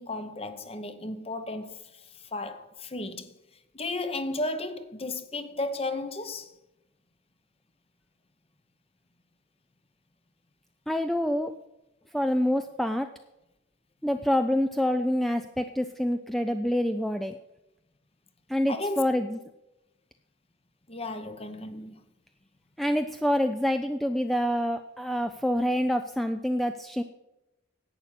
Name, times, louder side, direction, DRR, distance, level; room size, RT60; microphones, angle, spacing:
voice 1, 0.0-1.8 2.3-3.3 3.7-6.5 18.7-19.0 20.9-22.0, left 2 dB, 30° left, 0.9 m, -34 dB
voice 2, 10.9-11.5 12.1-13.1 14.0-17.4 18.5-19.4 22.8-27.0, equal, ahead, 0.4 m, -26 dB
11.0 x 8.7 x 5.7 m
head